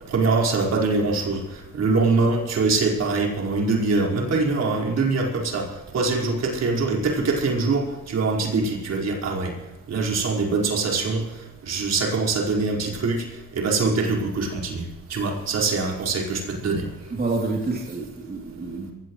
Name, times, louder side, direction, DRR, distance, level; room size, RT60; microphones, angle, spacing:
voice 1, 0.1-9.5 9.9-11.2 11.6-13.3 13.5-14.8 15.1-16.9, right 3 dB, 60° right, -1 dB, 5.0 m, -23 dB
voice 2, 17.1-18.9, right 3 dB, 30° right, -1 dB, 3.2 m, -28 dB
22.5 x 16.5 x 3.2 m, 1.1 s
cardioid pair, 90°, 30 cm